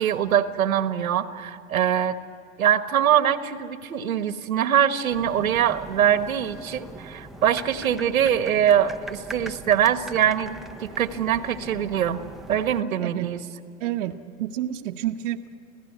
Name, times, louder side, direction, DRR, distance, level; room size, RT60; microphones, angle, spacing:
voice 1, 0.0-2.2 2.6-12.2 12.5-13.4, right 9 dB, 90° right, 11 dB, 1.3 m, -23 dB
sound 1, 5.1-12.8, right 2 dB, ahead, 0.6 m, -41 dB
voice 2, 13.0-13.3 13.8-15.6, right 12 dB, 65° right, 4 dB, 0.9 m, -30 dB
26.5 x 16.5 x 9.5 m, 2.5 s
hypercardioid pair, 120°, 40 cm